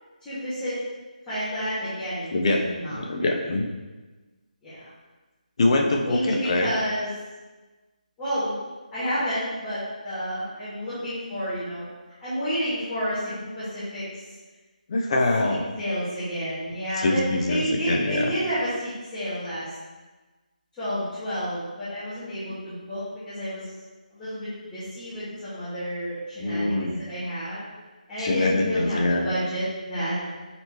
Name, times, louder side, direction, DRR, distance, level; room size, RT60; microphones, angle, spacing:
voice 1, 0.2-0.8 1.3-3.3 4.6-4.9 6.0-7.1 8.2-8.5 8.9-11.8 12.2-14.1 15.4-19.7 20.8-23.7 24.1-27.6 28.1-30.2, equal, 10° left, -16 dB, 2.0 m, -30 dB
voice 2, 2.3-3.6 5.6-6.7 14.9-15.6 16.9-18.3 26.4-27.1 28.2-29.3, left 2 dB, 40° left, 1 dB, 0.8 m, -24 dB
7.7 x 4.3 x 3.0 m, 1.2 s
figure-of-eight pair, 150°, 5 cm